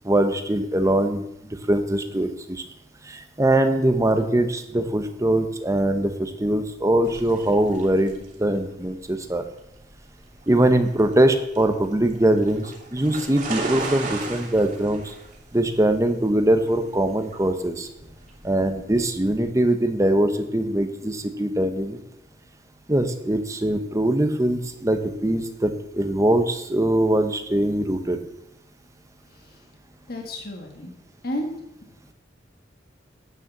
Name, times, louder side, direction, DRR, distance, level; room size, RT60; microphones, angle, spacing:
voice 1, 0.0-1.2 1.7-2.6 3.1-9.4 10.5-15.0 15.5-17.9 18.4-22.0 22.9-28.2, right 1 dB, 15° right, 8 dB, 0.9 m, -22 dB
sound 1, 7.0-19.4, right 3 dB, 45° right, 2.8 m, -37 dB
voice 2, 29.3-29.6 30.1-30.9 31.2-31.5 31.9-32.1, left 1 dB, 55° left, 2 dB, 1.7 m, -33 dB
9.3 x 6.4 x 7.3 m, 0.82 s
head